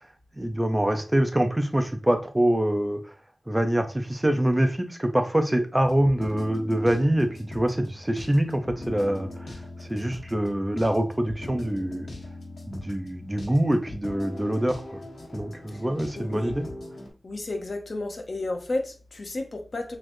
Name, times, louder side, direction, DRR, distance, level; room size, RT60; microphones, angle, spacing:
voice 1, 0.4-3.0 3.5-9.5 9.9-12.1 12.7-15.0 15.3-16.6, right 1 dB, 15° right, 0.6 m, -25 dB
sound 1, 5.8-17.1, left 2 dB, 85° left, 1.4 m, -40 dB
voice 2, 15.7-16.5 17.2-20.0, left 2 dB, 55° left, 0.8 m, -32 dB
4.2 x 3.1 x 2.6 m
wide cardioid pair, 75°, 0 cm